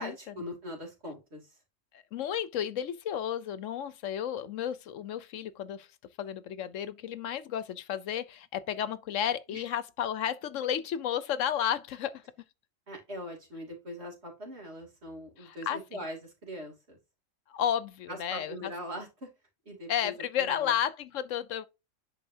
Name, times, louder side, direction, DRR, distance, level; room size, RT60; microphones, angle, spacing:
voice 1, 0.0-1.6 9.5-9.6 12.9-17.0 18.1-19.3 19.6-20.8, equal, 55° right, 3.2 m, -41 dB
voice 2, 1.9-5.9 6.2-12.2 15.4-16.0 17.5-18.7 19.9-21.7, left 9 dB, 75° left, 1.0 m, -32 dB
10.0 x 4.7 x 2.7 m
omnidirectional pair, 1.3 m